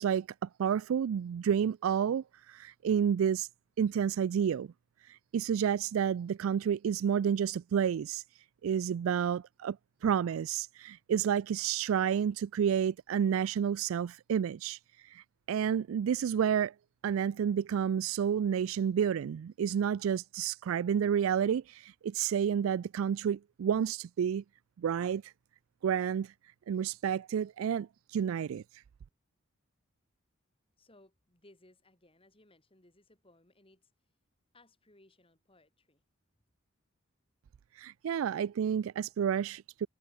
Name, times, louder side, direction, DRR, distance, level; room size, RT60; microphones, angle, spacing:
voice 1, 0.0-3.5 3.8-4.7 5.1-8.2 8.6-9.8 10.0-14.8 15.1-16.7 17.0-24.4 24.8-25.3 25.8-26.3 26.7-28.6 37.8-39.9, right 8 dB, 90° right, 0.3 m, -30 dB
voice 2, 30.8-34.2 34.5-36.0, left 1 dB, 25° left, 5.4 m, -63 dB
head